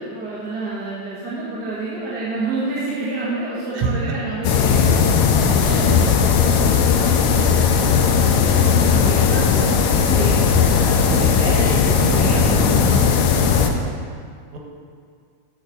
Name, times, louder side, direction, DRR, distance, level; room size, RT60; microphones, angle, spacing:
voice 1, 0.0-5.0 5.6-5.9 6.4-13.9, right 2 dB, 40° right, -9 dB, 1.7 m, -29 dB
sound 1, 4.4-13.7, left 6 dB, 80° left, 2.0 m, -17 dB
voice 2, 5.7-6.7 14.5-14.6, right 4 dB, 85° right, 1 dB, 2.6 m, -27 dB
8.0 x 6.6 x 6.4 m, 2.1 s
omnidirectional pair, 3.3 m